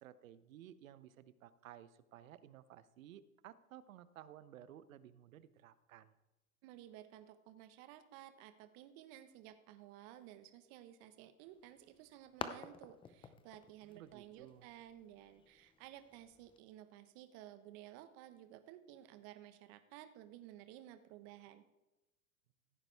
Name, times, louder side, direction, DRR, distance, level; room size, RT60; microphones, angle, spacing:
voice 1, 0.0-6.2 13.8-14.7, right 11 dB, 65° right, 15 dB, 0.9 m, -56 dB
voice 2, 6.6-21.6, right 12 dB, 45° right, 10 dB, 1.3 m, -55 dB
sound 1, 11.5-16.6, left 6 dB, 10° left, 0.6 m, -51 dB
16.0 x 9.0 x 3.5 m, 1.0 s
hypercardioid pair, 110°, 43 cm